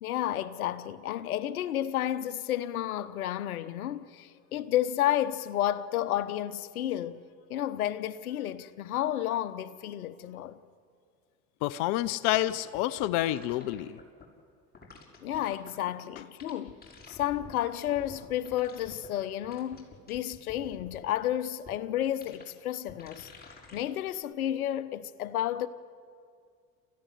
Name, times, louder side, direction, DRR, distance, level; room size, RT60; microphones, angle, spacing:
voice 1, 0.0-7.2 7.5-10.5 15.2-16.8 17.1-23.3 23.7-25.7, left 12 dB, 85° left, 1.1 m, -31 dB
voice 2, 11.6-14.0, left 15 dB, 65° left, 0.8 m, -28 dB
sound 1, 12.0-12.1 12.3-14.2 14.7-15.9 16.2-17.5 17.9-19.1 19.4-21.1 21.7-21.8 22.2-22.4 22.9-23.8 24.1-24.2, left 5 dB, 20° left, 6.0 m, -49 dB
27.5 x 15.5 x 9.9 m
hypercardioid pair, 75°, 42 cm